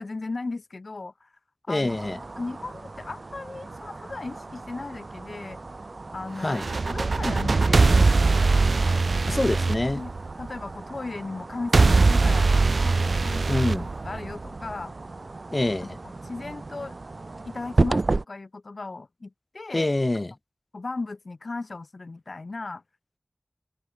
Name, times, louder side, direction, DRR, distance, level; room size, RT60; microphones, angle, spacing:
voice 1, 0.0-1.3 1.7-1.9 2.4-5.6 6.1-6.6 6.9-9.0 10.0-10.1 10.4-13.7 14.0-14.9 15.8-17.0 17.4-19.9 20.7-22.8, left 3 dB, 70° left, 2.8 m, -36 dB
voice 2, 1.7-2.2 6.4-6.7 9.3-10.0 13.5-13.9 15.5-16.0 19.7-20.3, left 2 dB, 40° left, 2.1 m, -25 dB
sound 1, 1.9-18.3, right 3 dB, 65° right, 3.5 m, -34 dB
sound 2, 6.5-10.6 11.7-14.6, right 3 dB, 85° right, 1.5 m, -21 dB
wide cardioid pair, 60°, 0 cm